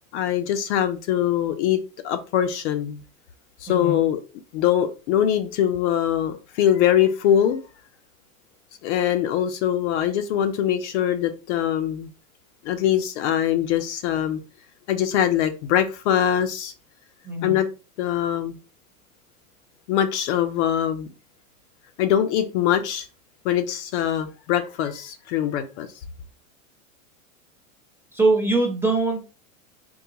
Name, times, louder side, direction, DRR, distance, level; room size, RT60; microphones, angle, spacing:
voice 1, 0.1-1.8 2.0-3.0 3.6-4.2 4.5-7.6 8.8-12.1 12.6-14.4 14.9-16.7 17.4-17.7 18.0-18.6 19.9-21.1 22.0-23.1 23.4-25.9, left 10 dB, 55° left, 0.5 m, -22 dB
voice 2, 3.7-4.0 17.2-17.5 28.1-29.2, right 2 dB, 5° right, 0.7 m, -22 dB
3.8 x 2.3 x 2.8 m
hypercardioid pair, 115°, 42 cm